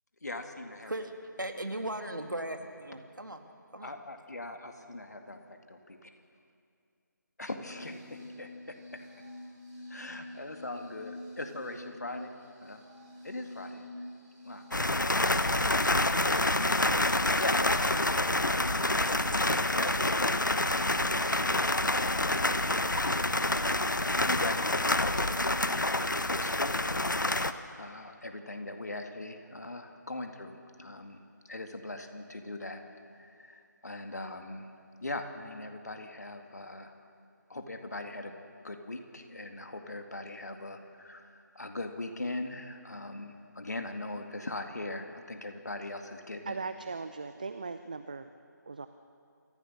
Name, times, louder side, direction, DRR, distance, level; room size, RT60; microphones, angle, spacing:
voice 1, 0.2-0.9 3.8-5.4 7.4-9.0 9.9-12.3 12.6-12.8 13.2-13.9 14.4-16.9 17.4-22.5 22.8-23.4 24.3-27.5 27.8-32.8 33.2-34.7 35.0-36.9 37.5-38.3 38.6-46.6, left 2 dB, 60° left, 5 dB, 2.1 m, -41 dB
voice 2, 1.4-3.4 3.7-3.9, right 1 dB, 80° right, 5 dB, 2.2 m, -37 dB
sound 1, 7.6-26.4, left 1 dB, 5° right, 6.1 m, -46 dB
sound 2, 14.7-27.5, left 2 dB, 75° left, 1.0 m, -27 dB
voice 3, 46.5-48.3 48.7-48.9, right 4 dB, 25° right, 10 dB, 0.4 m, -38 dB
27.5 x 14.5 x 6.6 m, 2.5 s
figure-of-eight pair, 160°, 10 cm